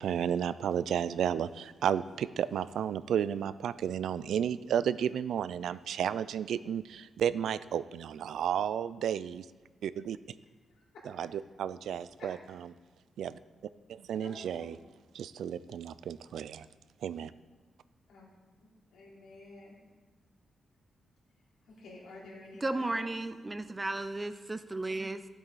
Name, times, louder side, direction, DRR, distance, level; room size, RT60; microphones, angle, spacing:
voice 1, 0.0-9.5 9.8-10.2 11.2-11.3 11.6-12.4 13.2-13.4 13.9-14.8 15.1-16.7 17.0-17.3, right 9 dB, 85° right, 16 dB, 0.4 m, -32 dB
voice 2, 14.2-14.8 18.1-18.3 18.6-19.7 21.7-23.1, left 2 dB, 85° left, -4 dB, 3.6 m, -50 dB
voice 3, 22.6-25.3, right 2 dB, 15° right, 11 dB, 0.4 m, -34 dB
14.5 x 8.3 x 4.1 m, 1.4 s
wide cardioid pair, 165°, 0 cm